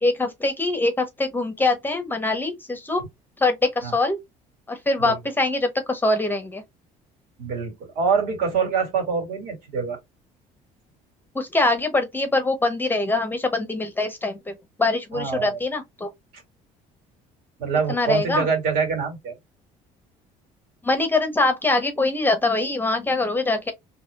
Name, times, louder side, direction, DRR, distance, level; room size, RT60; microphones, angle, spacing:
voice 1, 0.0-3.0 3.4-4.2 4.7-6.6 11.3-16.1 17.9-18.5 20.8-23.7, left 2 dB, 15° left, 0.9 m, -23 dB
voice 2, 7.4-10.0 15.1-15.6 17.6-19.3, right 5 dB, 75° right, 2.3 m, -25 dB
4.2 x 3.0 x 2.3 m
cardioid pair, 110°, 15 cm